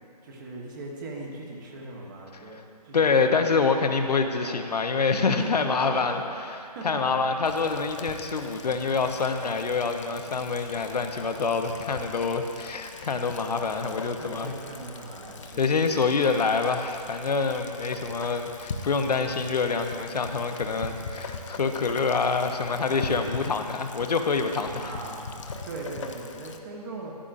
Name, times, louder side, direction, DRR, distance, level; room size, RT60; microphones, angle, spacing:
voice 1, 0.2-3.3 4.2-4.6 5.6-7.2 14.2-15.8 24.7-25.2 25.6-27.1, right 2 dB, 30° right, -2 dB, 1.3 m, -40 dB
voice 2, 2.9-6.2 6.8-14.5 15.6-24.9, left 4 dB, 70° left, 6 dB, 0.9 m, -26 dB
Rain, 7.4-26.6, left 4 dB, 45° left, 0.7 m, -41 dB
14.0 x 11.0 x 2.6 m, 2.5 s
hypercardioid pair, 155°, 21 cm